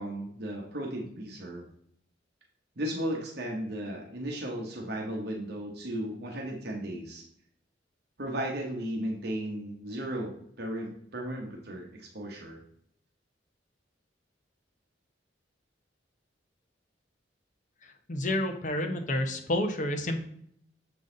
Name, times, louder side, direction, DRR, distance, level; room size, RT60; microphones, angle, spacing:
voice 1, 0.0-1.7 2.8-7.2 8.2-10.3 10.6-12.6, right 1 dB, 60° right, -1 dB, 1.0 m, -35 dB
voice 2, 18.1-20.3, left 1 dB, 45° left, 5 dB, 0.8 m, -29 dB
6.9 x 3.9 x 3.8 m, 0.68 s
head